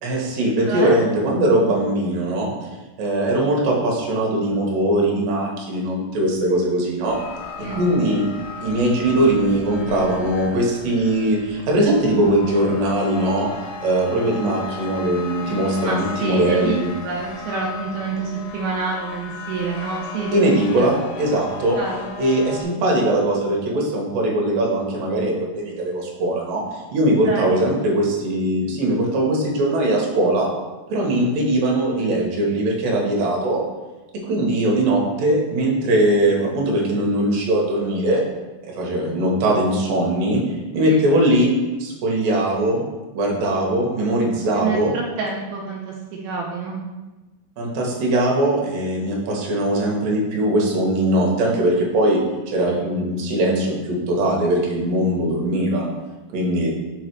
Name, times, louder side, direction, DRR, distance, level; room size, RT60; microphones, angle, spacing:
voice 1, 0.0-2.5 3.0-7.2 7.6-8.3 8.6-13.5 13.8-16.9 20.3-21.8 22.2-30.5 30.9-33.6 34.1-38.2 38.6-40.4 40.7-41.5 41.8-42.8 43.1-44.9 47.6-55.9 56.3-56.7, right 1 dB, 65° right, -1 dB, 2.4 m, -20 dB
voice 2, 0.7-1.0 7.6-7.8 15.8-16.7 17.0-20.3 20.8-20.9 21.7-22.1 27.3-27.7 40.9-41.0 44.6-45.9 46.2-46.8, right 4 dB, 85° right, -2 dB, 2.3 m, -27 dB
sound 1, 7.0-22.6, left 5 dB, 85° left, 2.6 m, -36 dB
5.6 x 4.0 x 4.5 m, 1.2 s
omnidirectional pair, 4.8 m